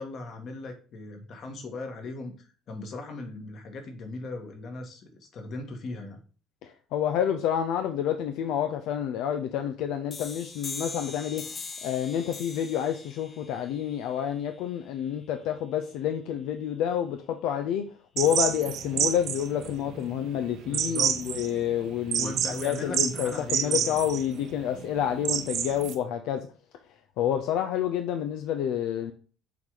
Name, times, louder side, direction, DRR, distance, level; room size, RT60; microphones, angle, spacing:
voice 1, 0.0-6.2 20.7-21.1 22.2-24.0, left 2 dB, 45° left, 1.7 m, -38 dB
voice 2, 6.6-17.8 18.2-22.3 22.6-26.5 27.2-29.1, left 9 dB, 75° left, 0.6 m, -29 dB
sound 1, 10.1-15.5, left 3 dB, 30° left, 0.9 m, -42 dB
sound 2, 18.2-25.9, right 9 dB, 55° right, 0.9 m, -29 dB
6.9 x 4.0 x 5.0 m
cardioid pair, 140°, 0 cm